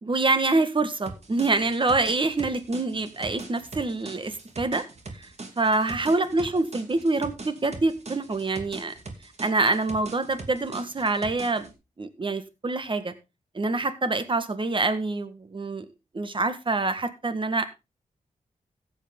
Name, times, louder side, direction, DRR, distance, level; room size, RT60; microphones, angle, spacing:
voice 1, 0.0-4.8 5.1-5.3 5.6-8.9 9.4-11.7 12.0-13.1 13.5-15.9 16.1-17.7, right 3 dB, 40° right, 11 dB, 1.6 m, -26 dB
sound 1, 1.1-11.7, right 3 dB, 55° right, 2.7 m, -41 dB
15.0 x 8.4 x 3.7 m, 0.26 s
wide cardioid pair, 85°, 14 cm